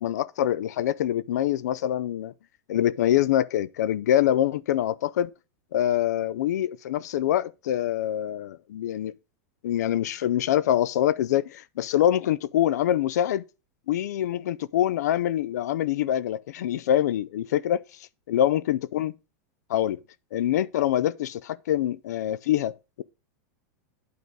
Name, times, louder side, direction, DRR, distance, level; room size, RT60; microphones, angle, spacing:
voice 1, 0.0-2.3 2.7-5.3 5.7-9.1 9.6-13.4 13.9-17.8 18.3-19.2 19.7-20.0 20.3-23.0, left 11 dB, 90° left, 0.4 m, -25 dB
9.4 x 3.9 x 4.6 m
supercardioid pair, 160°, 9 cm